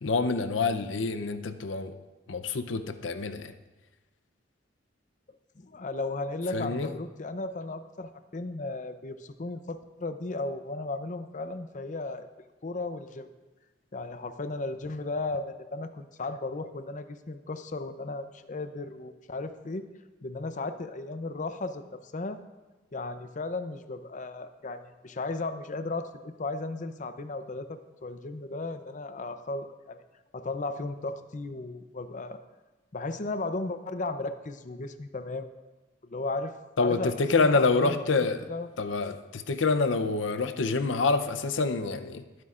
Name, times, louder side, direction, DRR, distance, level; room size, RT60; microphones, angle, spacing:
voice 1, 0.0-1.9 2.3-3.5 6.5-6.9 36.8-38.4 38.8-42.2, left 3 dB, 80° left, 9 dB, 0.7 m, -27 dB
voice 2, 5.6-12.3 12.6-13.3 13.9-19.9 20.2-22.4 22.9-30.0 30.3-32.4 32.9-35.5 36.0-38.0 38.5-38.7, left 2 dB, 40° left, 10 dB, 0.6 m, -35 dB
19.5 x 9.7 x 2.5 m, 1.1 s
head